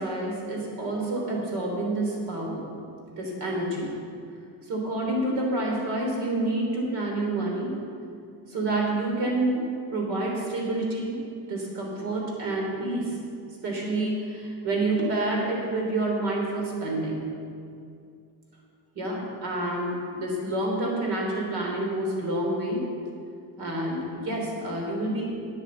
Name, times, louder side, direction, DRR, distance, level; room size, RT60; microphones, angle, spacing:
voice 1, 0.0-2.6 3.2-3.9 4.6-7.7 8.5-11.2 11.5-13.2 13.6-17.3 19.0-22.8 23.6-25.3, right 2 dB, 65° right, -1 dB, 3.5 m, -28 dB
9.1 x 9.1 x 7.6 m, 2.4 s
cardioid pair, 175°, 42 cm